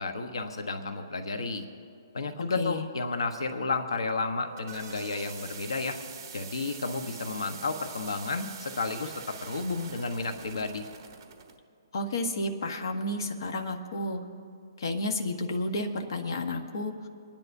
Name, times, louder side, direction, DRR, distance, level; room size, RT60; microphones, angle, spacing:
voice 1, 0.0-1.7 2.1-6.0 6.3-10.8, left 3 dB, 90° left, 6 dB, 1.1 m, -32 dB
voice 2, 2.5-2.9 11.9-14.2 14.8-16.9, left 2 dB, 55° left, 4 dB, 1.3 m, -31 dB
sound 1, 4.3-11.6, right 7 dB, 35° right, 1.3 m, -45 dB
28.0 x 10.5 x 2.7 m, 2.5 s
hypercardioid pair, 165°, 3 cm